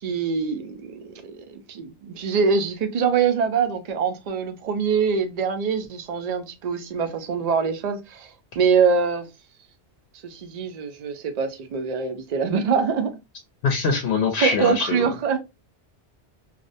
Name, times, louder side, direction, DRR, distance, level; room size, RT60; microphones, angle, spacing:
voice 1, 0.0-8.3 8.6-9.3 10.2-13.1 14.4-15.4, right 6 dB, 60° right, 0.4 m, -24 dB
voice 2, 13.6-15.0, left 4 dB, 70° left, 0.8 m, -22 dB
2.4 x 2.0 x 2.5 m
omnidirectional pair, 1.2 m